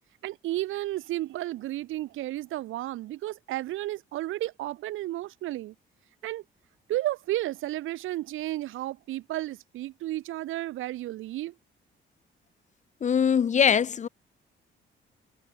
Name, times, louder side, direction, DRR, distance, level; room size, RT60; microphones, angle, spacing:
voice 1, 0.2-5.7 6.2-6.4 6.9-11.5, right 15 dB, 85° right, 1.8 m, -32 dB
voice 2, 13.0-14.1, left 7 dB, 35° left, 0.6 m, -22 dB
cardioid pair, 90°, 20 cm